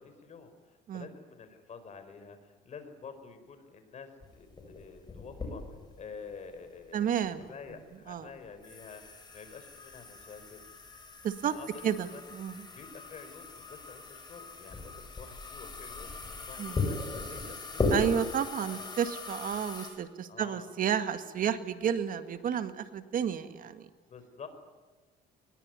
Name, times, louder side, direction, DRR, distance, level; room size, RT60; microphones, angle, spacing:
voice 1, 0.0-9.0 9.3-10.6 11.5-12.2 12.7-18.2 18.7-18.9 20.3-20.7 24.1-24.5, left 5 dB, 45° left, 8 dB, 5.0 m, -49 dB
sound 1, 4.2-19.9, left 3 dB, 25° left, 7.4 m, -38 dB
voice 2, 6.9-7.4 8.1-8.3 11.2-11.5 11.8-12.6 16.6-16.9 17.9-23.9, right 8 dB, 55° right, 10 dB, 2.0 m, -31 dB
23.0 x 21.5 x 9.7 m, 1.3 s
cardioid pair, 110°, 17 cm